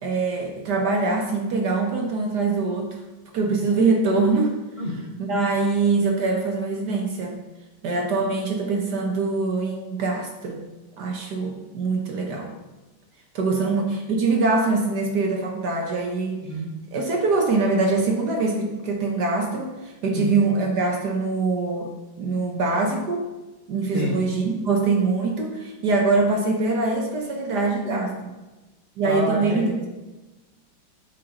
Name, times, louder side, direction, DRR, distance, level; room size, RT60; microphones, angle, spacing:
voice 1, 0.0-3.0 3.3-4.6 5.2-7.4 7.8-10.6 11.0-12.5 13.3-16.4 16.9-23.3 23.7-28.3 29.0-29.9, right 3 dB, 60° right, 2 dB, 1.3 m, -23 dB
voice 2, 4.8-5.1 13.6-13.7 16.5-16.7 20.1-20.3 23.9-24.2 29.0-29.7, equal, 35° left, -4 dB, 1.4 m, -28 dB
12.5 x 5.1 x 2.9 m, 1.1 s
omnidirectional pair, 2.2 m